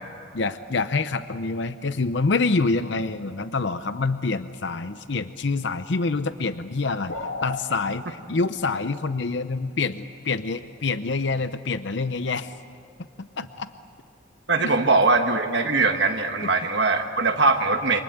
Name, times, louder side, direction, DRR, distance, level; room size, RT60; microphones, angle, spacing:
voice 1, 0.3-7.1 7.4-12.5 13.2-13.7 14.6-15.0, left 3 dB, 65° left, 11 dB, 0.7 m, -26 dB
sound 1, 7.1-7.7, left 3 dB, 85° left, 2.1 m, -31 dB
voice 2, 14.5-18.0, right 3 dB, 60° right, 4 dB, 1.4 m, -21 dB
28.5 x 25.5 x 8.0 m, 2.4 s
head